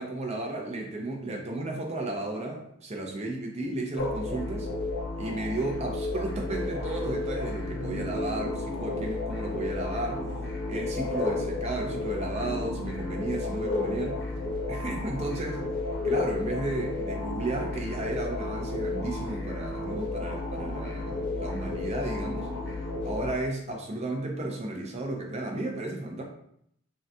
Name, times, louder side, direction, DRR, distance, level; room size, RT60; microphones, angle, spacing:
voice 1, 0.0-4.7 5.2-10.3 10.7-14.2 14.7-15.7 16.0-22.5 23.0-26.2, right 2 dB, 30° right, 1 dB, 0.5 m, -33 dB
sound 1, 4.0-23.3, left 2 dB, 55° left, 0.7 m, -32 dB
3.6 x 2.2 x 2.7 m, 0.71 s
head